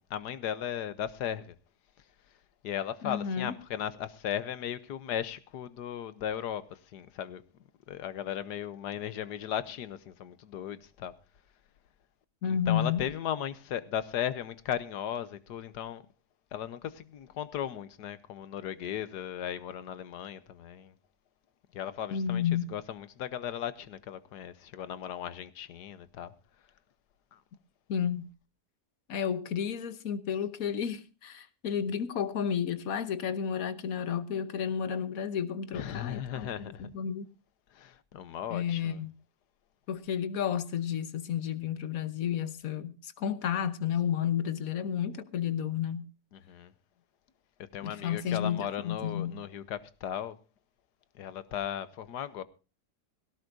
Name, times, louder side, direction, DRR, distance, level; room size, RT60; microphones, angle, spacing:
voice 1, 0.0-1.5 2.6-7.4 7.9-11.1 12.5-16.0 16.5-20.9 21.7-22.4 22.7-26.3 27.3-27.4 35.7-36.9 37.7-39.0 46.3-46.7 47.7-50.4 51.1-52.4, left 10 dB, 90° left, 1.5 m, -36 dB
voice 2, 3.0-3.5 12.4-13.0 22.1-22.7 27.9-28.3 29.1-37.3 38.5-39.1 39.9-46.1 47.8-49.4, left 8 dB, 60° left, 1.4 m, -31 dB
18.0 x 17.0 x 2.6 m
omnidirectional pair, 1.7 m